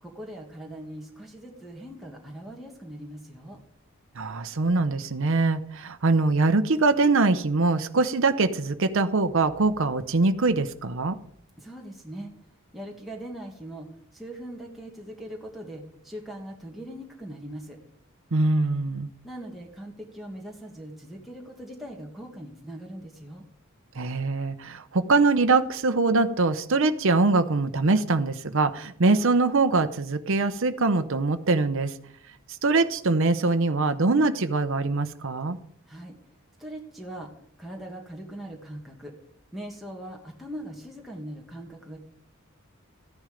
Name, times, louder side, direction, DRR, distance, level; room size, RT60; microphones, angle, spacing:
voice 1, 0.0-3.6 11.6-12.3 12.7-13.9 14.1-17.8 19.2-23.4 35.9-36.2 36.6-37.3 37.6-39.1 39.5-42.0, right 1 dB, ahead, -2 dB, 1.7 m, -40 dB
voice 2, 4.2-11.2 18.3-19.1 23.9-31.9 32.6-35.6, right 3 dB, 65° right, 8 dB, 0.8 m, -23 dB
14.5 x 10.5 x 5.1 m, 0.65 s
head